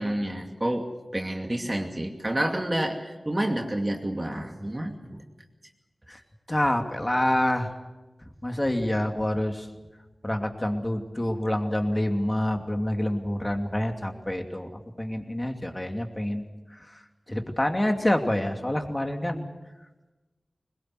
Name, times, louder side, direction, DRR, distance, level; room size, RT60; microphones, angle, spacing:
voice 1, 0.0-5.2, right 1 dB, 25° right, 3 dB, 2.5 m, -29 dB
voice 2, 6.5-7.7 8.4-9.7 10.2-14.7 15.0-16.4 16.7-17.0 17.3-19.4, left 1 dB, 20° left, 5 dB, 2.7 m, -27 dB
21.5 x 21.0 x 7.9 m, 1.1 s
wide cardioid pair, 50°, 0 cm